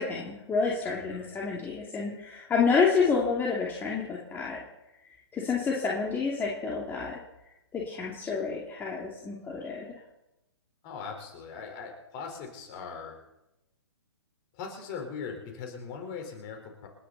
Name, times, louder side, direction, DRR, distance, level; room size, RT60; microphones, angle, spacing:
voice 1, 0.0-4.6 5.3-7.2 7.7-10.0, left 5 dB, 15° left, -4 dB, 2.7 m, -29 dB
voice 2, 0.8-1.3 10.8-13.2 14.5-16.9, left 5 dB, 35° left, 3 dB, 4.5 m, -40 dB
29.0 x 10.0 x 4.2 m, 0.92 s
hypercardioid pair, 135°, 15 cm